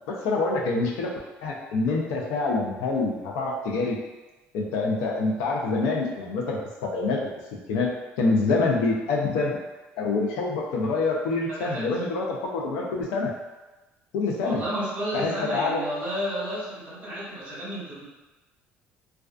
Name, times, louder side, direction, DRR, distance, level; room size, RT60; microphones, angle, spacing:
voice 1, 0.1-1.1 1.4-4.0 4.5-7.2 7.7-9.6 10.0-13.3 14.1-14.6 15.1-15.8, left 3 dB, 90° left, -2 dB, 0.5 m, -26 dB
voice 2, 14.4-18.0, equal, 35° right, -8 dB, 1.1 m, -31 dB
2.4 x 2.3 x 2.3 m, 1.1 s
cardioid pair, 125°, 5 cm